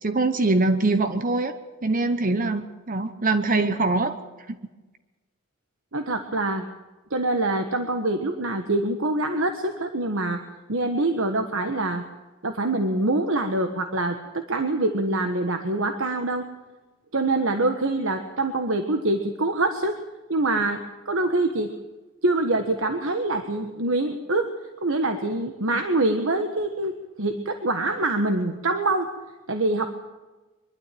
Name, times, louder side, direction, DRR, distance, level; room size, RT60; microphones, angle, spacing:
voice 1, 0.0-1.5 1.8-4.2 4.5-4.6, right 3 dB, 40° right, 10 dB, 0.9 m, -23 dB
voice 2, 5.9-6.6 7.1-10.4 10.7-12.0 12.4-16.5 17.1-20.0 20.3-21.7 22.2-24.5 24.8-29.1 29.5-29.9, right 2 dB, 70° right, 6 dB, 1.4 m, -25 dB
23.0 x 12.5 x 9.3 m, 1.2 s
head